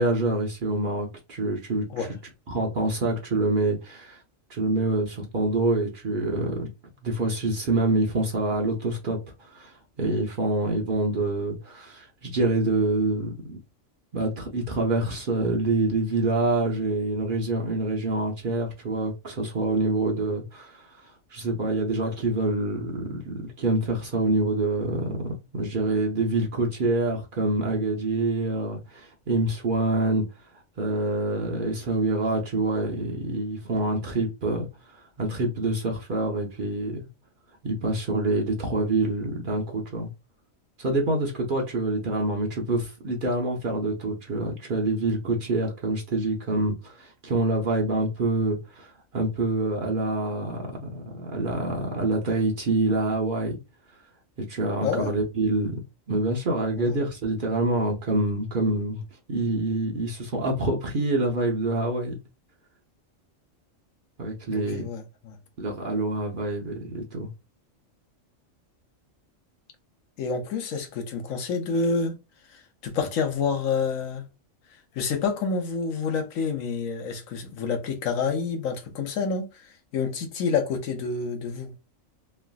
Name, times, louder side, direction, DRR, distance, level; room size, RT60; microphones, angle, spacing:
voice 1, 0.0-2.1 2.5-4.2 4.5-6.7 7.0-13.6 14.1-30.2 30.8-37.1 37.6-40.1 40.8-53.6 54.5-55.8 56.1-59.0 59.3-62.2 64.2-64.9 65.6-67.3, right 2 dB, 50° right, 0.7 m, -26 dB
voice 2, 64.5-65.4 70.2-72.2 72.5-74.2 74.9-81.7, left 5 dB, 85° left, 1.1 m, -28 dB
3.2 x 2.4 x 2.2 m
omnidirectional pair, 1.4 m